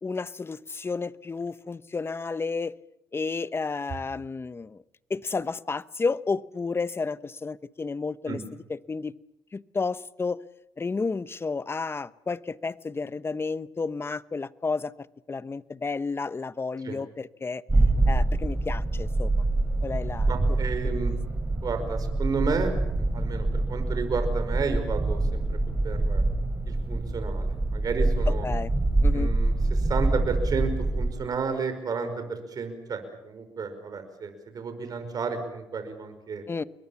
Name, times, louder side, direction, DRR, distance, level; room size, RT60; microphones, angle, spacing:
voice 1, 0.0-2.7 3.1-4.8 5.1-8.4 8.7-9.1 9.5-10.4 10.8-17.6 18.1-19.4 19.8-20.4 21.0-21.2 28.4-28.7 29.0-29.3 36.5-36.6, left 4 dB, 30° left, 16 dB, 1.0 m, -31 dB
sound 1, 17.7-31.1, right 2 dB, 20° right, 4.8 m, -25 dB
voice 2, 20.3-21.1 21.6-22.7 23.0-25.6 25.8-26.2 26.7-28.5 29.1-36.4, right 5 dB, 55° right, 8 dB, 5.2 m, -32 dB
28.5 x 22.0 x 7.2 m, 0.87 s
supercardioid pair, 65°, 8 cm